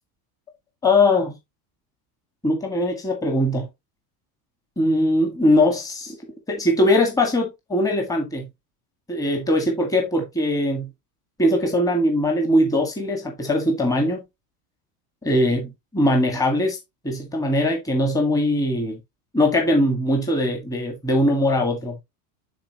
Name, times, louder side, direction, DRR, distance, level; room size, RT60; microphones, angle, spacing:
voice 1, 0.8-1.3 2.4-3.7 4.8-6.2 6.5-8.5 9.1-10.9 11.4-14.2 15.2-16.8 17.0-19.0 19.3-22.0, left 1 dB, 10° left, 1.8 m, -21 dB
10.5 x 4.4 x 2.9 m
supercardioid pair, 155°, 45 cm